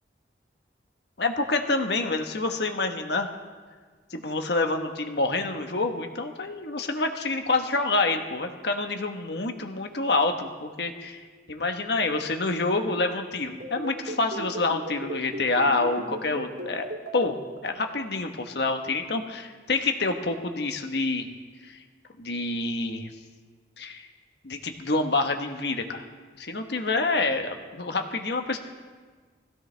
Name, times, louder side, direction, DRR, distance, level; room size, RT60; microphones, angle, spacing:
voice 1, 1.2-3.3 4.1-16.9 17.1-21.3 21.6-21.8 22.2-23.1 23.8-24.1 24.4-26.0 26.4-28.6, left 3 dB, 65° left, 5 dB, 1.3 m, -27 dB
sound 1, 13.4-17.3, right 1 dB, 75° right, 3.0 m, -35 dB
21.0 x 15.5 x 3.4 m, 1.5 s
head